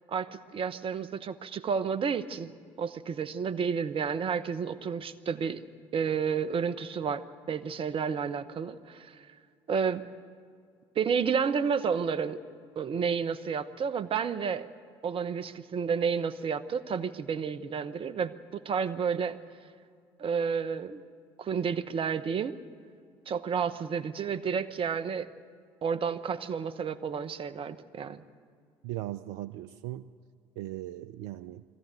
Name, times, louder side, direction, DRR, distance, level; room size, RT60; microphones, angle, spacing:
voice 1, 0.1-2.5 2.8-5.6 5.9-9.3 9.7-10.0 10.9-12.4 12.8-14.7 15.0-19.4 20.2-21.0 21.4-22.5 23.3-25.3 25.8-28.2, right 6 dB, 45° right, 13 dB, 1.0 m, -31 dB
voice 2, 28.8-30.1 30.6-31.6, right 14 dB, 75° right, 13 dB, 0.5 m, -38 dB
23.0 x 14.5 x 9.3 m, 2.2 s
hypercardioid pair, 60°, 13 cm